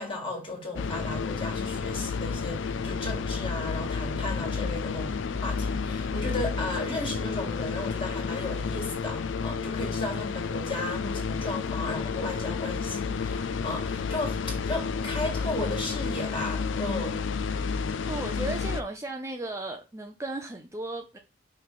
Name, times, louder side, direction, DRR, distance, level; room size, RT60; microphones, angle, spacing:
voice 1, 0.0-17.3, left 2 dB, 25° left, 1.8 m, -35 dB
sound 1, 0.8-18.8, left 5 dB, 70° left, 0.5 m, -31 dB
voice 2, 18.1-21.2, right 2 dB, 15° right, 0.4 m, -35 dB
5.5 x 4.5 x 3.9 m
head